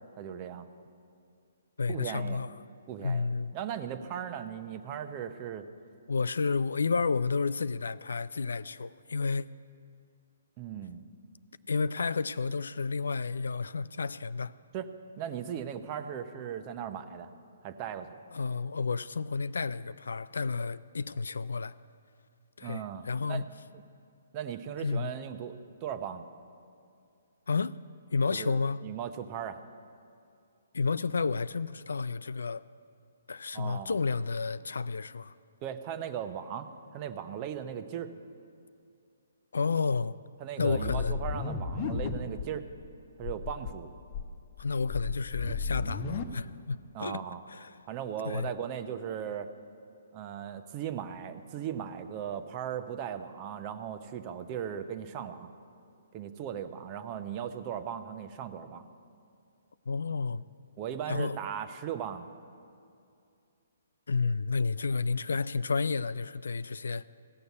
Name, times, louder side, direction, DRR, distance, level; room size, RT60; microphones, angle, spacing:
voice 1, 0.2-0.7 1.9-2.4 2.9-3.3 3.5-5.7 10.6-11.0 14.7-14.9 15.2-17.3 17.6-18.2 22.6-23.4 23.7-23.8 24.3-26.3 28.3-29.6 33.5-34.0 35.6-38.1 40.4-42.7 43.2-43.9 46.9-47.4 47.9-49.5 50.1-55.5 56.1-58.9 60.8-62.3, right 9 dB, 35° right, 0.8 m, -37 dB
voice 2, 1.8-2.5 3.0-3.5 6.1-9.5 11.7-14.5 18.3-21.8 22.6-23.4 24.8-25.1 27.5-27.8 28.1-28.9 30.7-32.6 33.3-35.3 39.5-40.2 40.6-41.2 44.6-47.2 47.5-47.7 48.2-48.5 59.9-60.4 61.1-61.4 64.1-67.0, left 4 dB, 75° left, 0.3 m, -31 dB
sound 1, 40.6-42.5 42.8-42.9 43.2-43.7 44.1-46.2, left 5 dB, 40° left, 1.0 m, -34 dB
15.5 x 6.8 x 9.4 m
hypercardioid pair, 135°, 0 cm